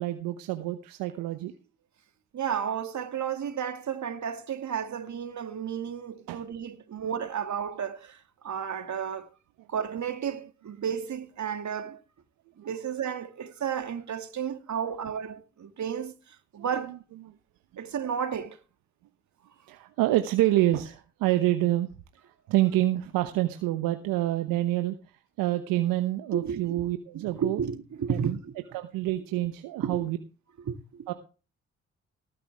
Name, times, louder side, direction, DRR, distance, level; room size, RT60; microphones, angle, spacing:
voice 1, 0.0-1.5 6.3-6.4 6.9-7.0 14.8-14.9 16.6-16.7 17.2-17.3 19.7-21.9 22.2-25.0 25.4-27.6 28.1-28.4 28.7-30.2 31.1-31.2, right 15 dB, 75° right, 1.0 m, -27 dB
voice 2, 2.3-9.3 9.7-12.0 12.6-17.0 17.8-18.6 26.3-26.8 27.1-28.5 29.8-30.0 30.7-31.1, right 8 dB, 55° right, 2.1 m, -33 dB
19.0 x 9.0 x 3.5 m
hypercardioid pair, 45°, 34 cm